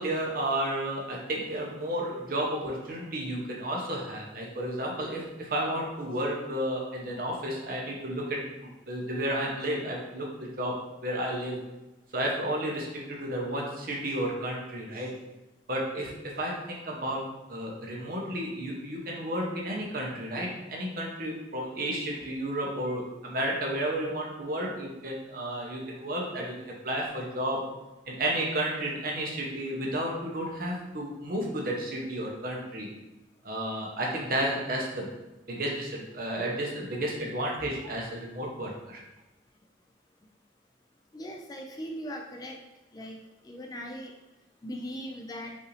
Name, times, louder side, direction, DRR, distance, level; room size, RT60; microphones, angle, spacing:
voice 1, 0.0-11.6 12.1-15.2 15.7-27.7 28.1-32.9 33.4-35.1 35.5-39.0, right 1 dB, 50° right, -2 dB, 0.9 m, -32 dB
voice 2, 41.1-42.6 42.9-43.2 43.4-44.1 44.6-45.6, equal, 20° left, 2 dB, 0.3 m, -39 dB
5.3 x 2.6 x 3.2 m, 1.0 s
head